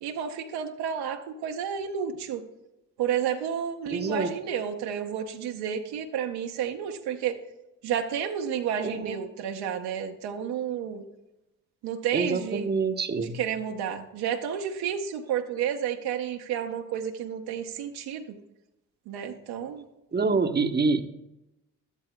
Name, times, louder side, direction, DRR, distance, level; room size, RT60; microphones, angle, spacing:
voice 1, 0.0-2.5 3.0-7.4 7.8-11.0 11.8-12.7 13.2-18.4 19.1-19.9, right 8 dB, 75° right, 4 dB, 0.9 m, -31 dB
voice 2, 3.9-4.3 8.8-9.2 12.1-13.4 20.1-21.0, right 4 dB, 25° right, 7 dB, 0.9 m, -26 dB
12.5 x 11.5 x 2.2 m, 0.93 s
hypercardioid pair, 45°, 39 cm